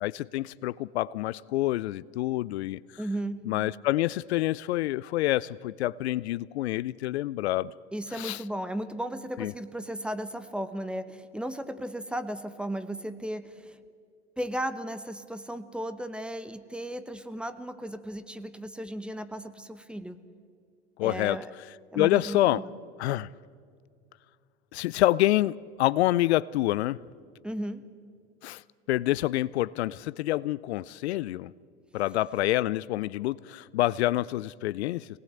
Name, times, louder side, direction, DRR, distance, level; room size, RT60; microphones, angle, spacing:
voice 1, 0.0-2.8 3.5-7.7 8.1-8.4 9.4-9.5 21.0-21.4 21.9-22.6 23.0-23.3 24.7-27.0 28.4-28.6 28.9-31.5 31.9-35.1, left 16 dB, 70° left, 0.5 m, -27 dB
voice 2, 3.0-3.5 7.9-13.8 14.4-20.2 21.0-21.5 21.9-22.7 27.4-27.8, right 1 dB, 5° right, 1.1 m, -35 dB
24.5 x 19.0 x 7.9 m
hypercardioid pair, 95°, 34 cm